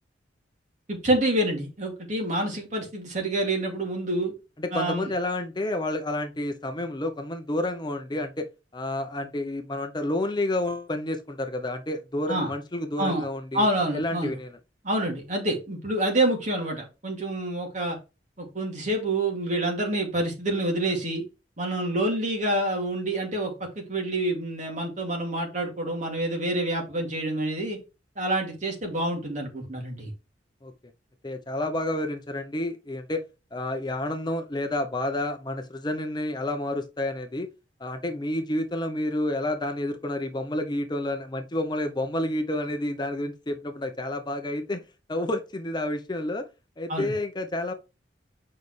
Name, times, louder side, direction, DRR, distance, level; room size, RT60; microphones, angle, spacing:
voice 1, 0.9-4.3 4.7-5.1 12.3-12.5 13.0-13.2 13.5-14.4 14.8-18.0 18.4-21.2 21.6-27.8 28.2-30.1 46.9-47.1, right 1 dB, 45° right, 2.4 m, -27 dB
voice 2, 4.6-8.5 8.7-13.7 13.9-14.6 30.6-30.7 31.2-33.2 33.5-37.5 37.8-44.8 45.1-46.4 46.8-47.7, left 1 dB, 25° left, 0.7 m, -30 dB
7.3 x 5.4 x 3.2 m
head